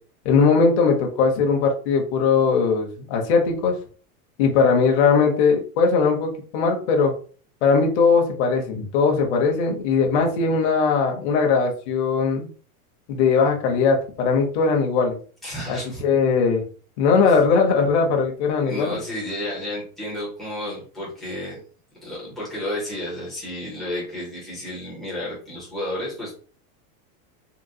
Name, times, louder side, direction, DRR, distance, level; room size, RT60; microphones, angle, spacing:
voice 1, 0.2-3.7 4.4-7.1 7.6-12.5 13.1-15.2 15.7-16.6 17.0-19.0, left 5 dB, 45° left, 1 dB, 0.7 m, -20 dB
voice 2, 15.4-16.0 17.2-17.3 18.6-21.6 22.0-26.3, left 1 dB, ahead, -7 dB, 0.4 m, -31 dB
3.7 x 2.2 x 2.6 m, 0.41 s
supercardioid pair, 170°, 46 cm